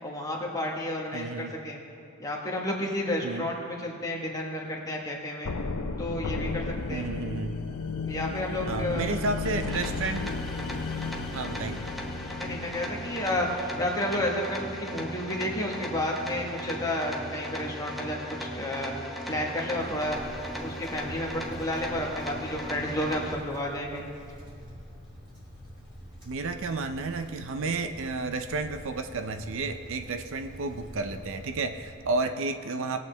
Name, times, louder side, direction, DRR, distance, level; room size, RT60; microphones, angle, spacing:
voice 1, 0.0-1.8 2.2-5.5 6.0-7.1 8.0-9.5 12.4-18.9 19.3-20.2 20.6-24.0, left 1 dB, 15° left, -2 dB, 1.5 m, -31 dB
voice 2, 1.1-1.6 3.2-3.5 6.9-7.6 8.7-10.4 11.3-11.8 26.3-33.0, right 3 dB, 60° right, 8 dB, 0.5 m, -31 dB
sound 1, 5.4-14.3, left 4 dB, 90° left, 0.7 m, -34 dB
sound 2, 9.6-23.3, equal, ahead, 0.9 m, -37 dB
Wind, 19.5-32.3, equal, 20° right, 2.9 m, -47 dB
19.5 x 8.2 x 3.4 m, 2.5 s
head